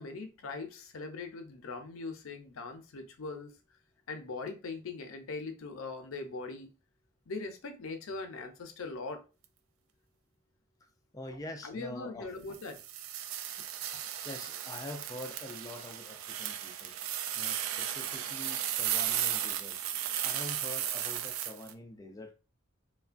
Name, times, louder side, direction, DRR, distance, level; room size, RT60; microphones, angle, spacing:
voice 1, 0.0-3.6 4.1-6.7 7.3-9.2 11.6-12.8, left 3 dB, 80° left, 0.5 m, -41 dB
voice 2, 11.1-12.3 14.2-16.9 17.4-19.8 20.2-22.3, left 1 dB, 15° left, 0.3 m, -45 dB
sound 1, 12.5-21.7, right 10 dB, 85° right, 0.3 m, -35 dB
3.1 x 2.1 x 2.4 m
head